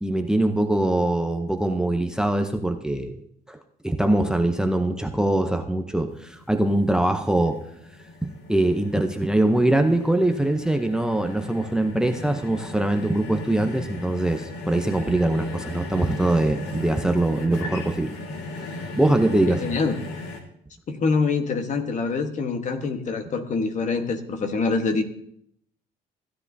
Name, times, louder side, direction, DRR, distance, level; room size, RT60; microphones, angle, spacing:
voice 1, 0.0-3.2 3.5-3.6 3.8-7.6 8.2-18.1 19.0-19.6, right 1 dB, 5° right, 6 dB, 0.7 m, -22 dB
sound 1, 6.1-20.4, left 2 dB, 85° left, 1.8 m, -37 dB
voice 2, 19.5-20.0 20.9-25.0, left 4 dB, 45° left, 6 dB, 1.3 m, -25 dB
15.5 x 9.8 x 2.7 m, 0.69 s
cardioid pair, 110°, 17 cm